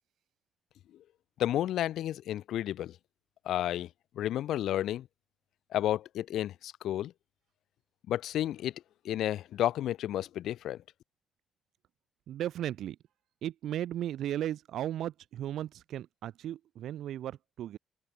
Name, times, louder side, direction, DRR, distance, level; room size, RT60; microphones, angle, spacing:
voice 1, 1.4-3.0 3.5-3.9 4.2-5.1 5.7-7.1 8.1-8.7 9.0-10.8, left 12 dB, 80° left, 0.5 m, -31 dB
voice 2, 12.3-13.0 13.4-17.8, right 11 dB, 75° right, 0.5 m, -36 dB
open air
cardioid pair, 90°, 0 cm